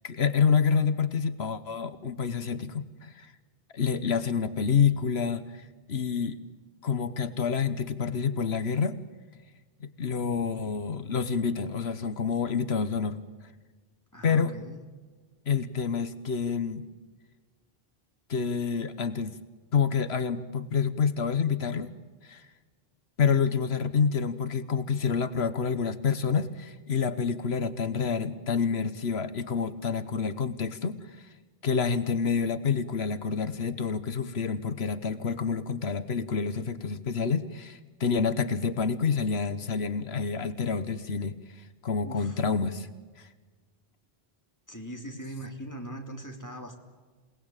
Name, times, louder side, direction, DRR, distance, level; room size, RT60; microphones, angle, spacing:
voice 1, 0.0-3.3 3.7-6.4 6.8-9.0 9.8-13.5 14.2-14.5 15.5-16.9 18.3-19.4 19.7-21.9 22.2-22.5 23.2-31.3 31.6-42.9 43.2-43.3, left 6 dB, 85° left, 13 dB, 1.4 m, -28 dB
voice 2, 14.1-14.8 42.0-42.4 44.7-46.7, right 1 dB, 15° left, 3 dB, 3.3 m, -40 dB
28.0 x 19.0 x 8.9 m, 1.4 s
omnidirectional pair, 1.0 m